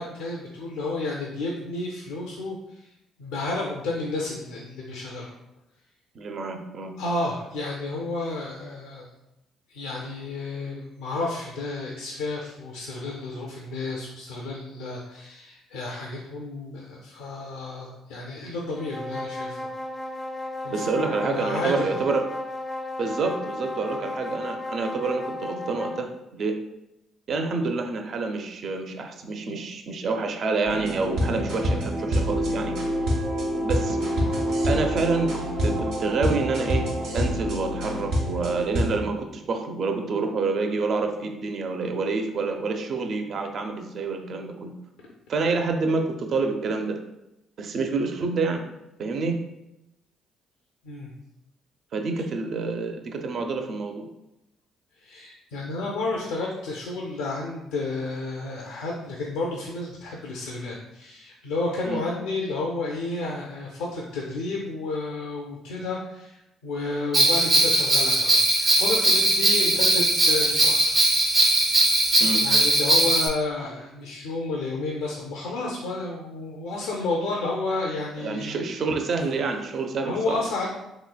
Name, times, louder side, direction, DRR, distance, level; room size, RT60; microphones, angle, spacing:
voice 1, 0.0-2.9 3.2-5.3 7.0-9.1 9.7-19.7 20.6-21.9 50.8-51.1 55.0-66.4 66.6-70.9 72.4-78.6 80.0-80.7, left 2 dB, 85° left, -2 dB, 0.4 m, -31 dB
voice 2, 6.1-7.0 20.7-22.2 23.0-26.5 27.3-32.8 33.6-34.0 34.7-36.9 37.1-44.8 45.3-47.0 47.6-48.6 49.0-49.4 51.9-54.1 61.8-62.0 72.2-72.4 78.2-80.4, right 4 dB, 60° right, 4 dB, 0.4 m, -28 dB
sound 1, 18.7-26.1, left 2 dB, 10° left, 0.4 m, -34 dB
sound 2, 30.6-39.0, equal, 80° right, 0.8 m, -26 dB
Bell, 67.1-73.3, right 1 dB, 35° right, 0.8 m, -20 dB
3.1 x 3.0 x 2.2 m, 0.90 s
supercardioid pair, 65°, 0 cm